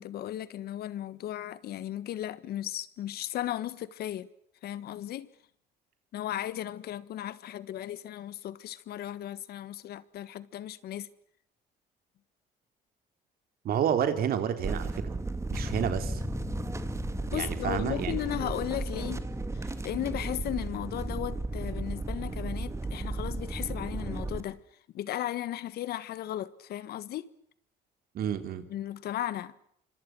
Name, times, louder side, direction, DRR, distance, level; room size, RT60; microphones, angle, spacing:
voice 1, 0.0-4.3 4.6-5.3 6.1-11.1 17.3-19.2 19.5-24.6 24.9-27.3 28.7-29.5, left 12 dB, 70° left, 1.5 m, -36 dB
voice 2, 13.6-15.0 15.5-16.2 17.3-18.2 18.5-18.6 28.1-28.6, right 9 dB, 65° right, 3.8 m, -30 dB
sound 1, 14.6-24.4, right 3 dB, 15° right, 2.3 m, -35 dB
Bass guitar, 15.5-21.8, left 3 dB, 20° left, 1.5 m, -41 dB
26.5 x 25.5 x 6.2 m
cardioid pair, 110°, 17 cm